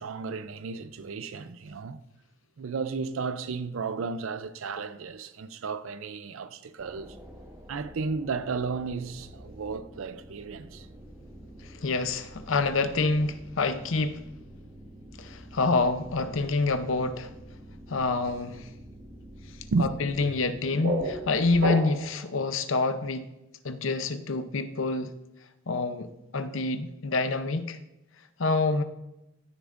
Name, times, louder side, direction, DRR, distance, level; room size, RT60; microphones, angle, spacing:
voice 1, 0.0-2.0 2.6-7.2 7.7-10.9 19.7-19.9, right 4 dB, 75° right, 0.5 m, -33 dB
sound 1, 6.8-20.3, right 1 dB, 15° right, 1.2 m, -48 dB
voice 2, 11.7-14.2 15.2-17.3 17.9-18.7 19.8-23.3 23.6-25.1 25.7-27.8 28.4-28.8, left 3 dB, 70° left, 0.7 m, -27 dB
sound 2, 20.3-22.3, right 1 dB, 55° right, 1.3 m, -31 dB
16.5 x 6.9 x 2.5 m
head